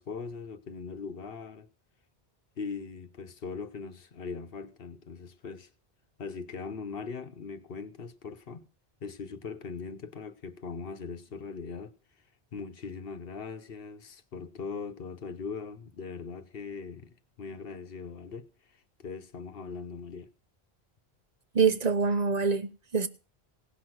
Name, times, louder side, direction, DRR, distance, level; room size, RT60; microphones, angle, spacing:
voice 1, 0.0-1.7 2.6-5.7 6.2-8.7 9.0-11.9 12.5-20.3, left 5 dB, 65° left, 1.1 m, -40 dB
voice 2, 21.5-23.1, right 5 dB, 45° right, 0.9 m, -25 dB
17.0 x 6.1 x 7.8 m
omnidirectional pair, 1.1 m